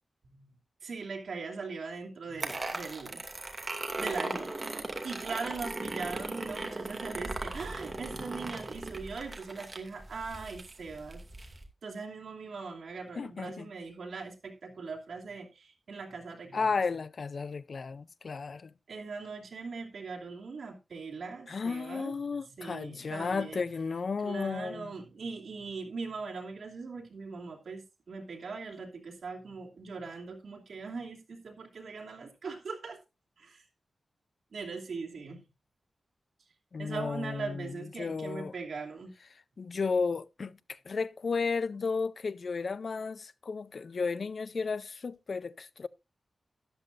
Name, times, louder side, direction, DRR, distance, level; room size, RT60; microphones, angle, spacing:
voice 1, 0.8-3.2 4.0-4.5 5.0-11.2 11.8-16.7 18.9-22.1 22.6-23.6 24.2-33.0 33.4-33.6 34.5-35.4 36.8-39.1, right 4 dB, 80° right, 2.8 m, -40 dB
sound 1, 2.4-11.6, right 2 dB, 30° right, 2.4 m, -38 dB
voice 2, 13.2-13.7 16.5-18.7 21.5-24.9 36.7-38.5 39.6-45.9, left 4 dB, 60° left, 0.5 m, -33 dB
13.0 x 11.0 x 2.6 m
wide cardioid pair, 105°, 0 cm